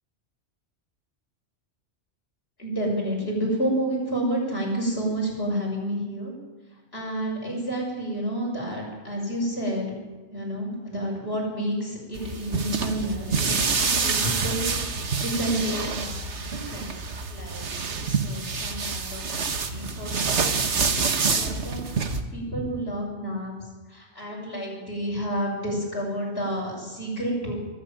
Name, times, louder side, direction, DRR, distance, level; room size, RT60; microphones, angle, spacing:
voice 1, 2.6-6.3 6.9-10.0 10.3-16.2 16.5-16.9 17.3-19.2 19.7-21.8 22.3-23.5 23.9-27.5, right 1 dB, 60° left, -2 dB, 6.7 m, -30 dB
sound 1, 12.2-22.2, right 5 dB, 75° right, 1.7 m, -27 dB
23.0 x 13.0 x 9.1 m, 1.3 s
omnidirectional pair, 1.2 m